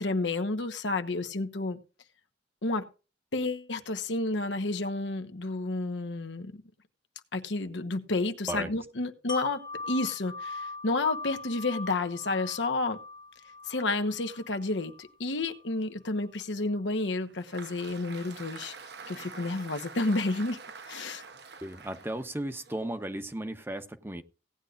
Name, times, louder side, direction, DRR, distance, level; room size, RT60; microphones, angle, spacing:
voice 1, 0.0-1.8 2.6-2.9 3.3-6.6 7.3-13.0 13.7-18.7 19.1-20.6 20.9-21.2, left 2 dB, 90° left, 1.1 m, -31 dB
Wind chime, 9.3-15.1 15.5-15.6, left 3 dB, 25° left, 0.7 m, -41 dB
Applause, 17.1-23.4, right 5 dB, 65° right, 1.0 m, -47 dB
voice 2, 21.6-24.2, right 1 dB, 15° right, 0.8 m, -35 dB
17.0 x 9.4 x 2.5 m
head